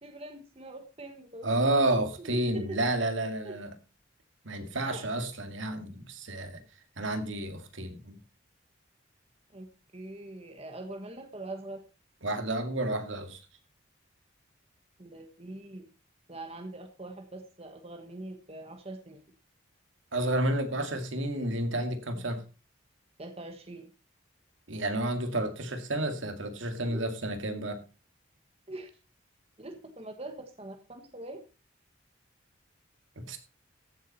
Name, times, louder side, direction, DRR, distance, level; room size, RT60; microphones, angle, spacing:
voice 1, 0.0-3.1 3.4-3.6 4.7-5.0 9.5-9.7 9.9-11.8 15.0-15.9 16.3-19.2 22.1-22.4 23.2-23.9 26.8-27.1 28.7-28.9 29.6-31.4, right 2 dB, 30° right, 5 dB, 1.3 m, -43 dB
voice 2, 1.4-3.7 4.4-6.6 7.0-8.2 12.2-13.4 20.1-22.4 24.7-27.8 33.2-33.4, right 1 dB, 75° right, 7 dB, 2.1 m, -30 dB
14.5 x 7.5 x 4.2 m, 0.33 s
head